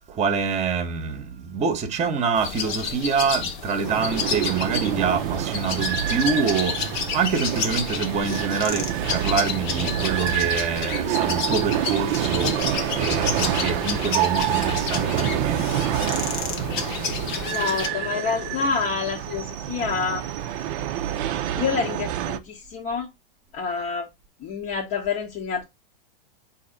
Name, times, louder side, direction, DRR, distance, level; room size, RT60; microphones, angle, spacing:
voice 1, 0.1-15.8, right 5 dB, 25° right, 0.9 m, -26 dB
sound 1, 2.4-17.9, left 6 dB, 55° left, 1.1 m, -31 dB
sound 2, 3.8-22.4, right 12 dB, 40° right, 0.5 m, -27 dB
sound 3, 9.6-18.7, left 9 dB, 80° left, 0.6 m, -39 dB
voice 2, 17.5-20.2 21.6-23.1 23.5-24.1 24.4-25.6, left 5 dB, 35° left, 0.8 m, -27 dB
4.1 x 2.8 x 3.8 m
hypercardioid pair, 120°, 29 cm